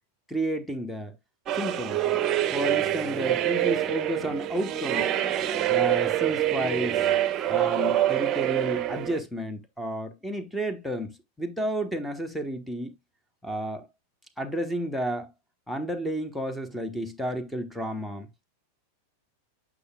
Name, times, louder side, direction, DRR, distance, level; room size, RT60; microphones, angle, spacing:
voice 1, 0.3-1.1 1.5-2.0 2.5-5.1 5.7-7.0 7.5-12.9 13.4-13.9 14.4-15.3 15.7-18.4, right 1 dB, 5° left, 1.1 m, -31 dB
sound 1, 1.5-9.2, right 12 dB, 30° right, 0.7 m, -26 dB
8.3 x 5.9 x 2.3 m
figure-of-eight pair, 90°, 0 cm